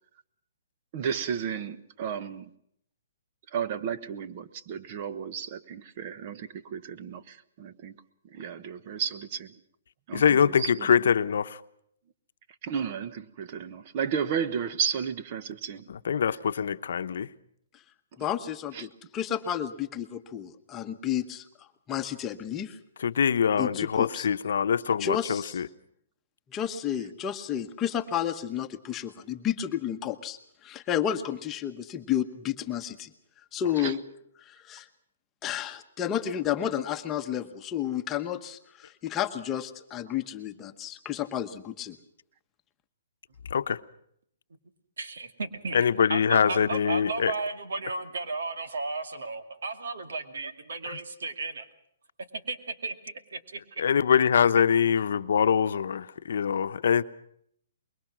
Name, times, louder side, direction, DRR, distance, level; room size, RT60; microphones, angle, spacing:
voice 1, 0.9-2.4 3.5-8.0 8.2-9.5 10.1-10.9 12.6-15.9 18.7-18.9 33.8-34.0, right 7 dB, 40° right, 1.2 m, -33 dB
voice 2, 10.1-11.6 16.0-17.3 23.0-25.7 43.5-43.8 45.7-47.3 50.8-51.0 53.8-57.0, left 7 dB, 70° left, 0.9 m, -24 dB
voice 3, 18.2-21.4 21.9-22.8 23.6-24.3 25.0-25.6 26.5-33.1 33.5-34.0 34.5-34.9 35.4-42.0, left 10 dB, 20° left, 1.1 m, -31 dB
voice 4, 45.0-45.8 46.1-51.7 52.3-53.8 55.1-55.3, right 3 dB, 80° right, 2.4 m, -34 dB
24.5 x 22.0 x 6.2 m
hypercardioid pair, 160°, 0 cm